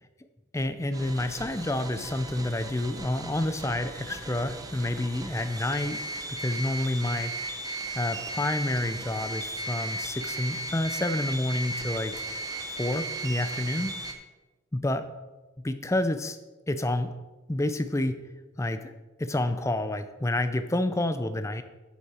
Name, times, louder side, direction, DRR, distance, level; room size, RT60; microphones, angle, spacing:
voice 1, 0.5-6.0 6.3-7.3 7.9-12.1 12.7-13.9 14.7-15.1 15.6-16.4 16.7-17.1 17.5-18.2 18.6-21.6, left 1 dB, 15° left, 9 dB, 0.5 m, -29 dB
sound 1, 0.9-14.1, right 1 dB, 20° right, 0.7 m, -36 dB
8.3 x 7.9 x 4.3 m, 1.2 s
head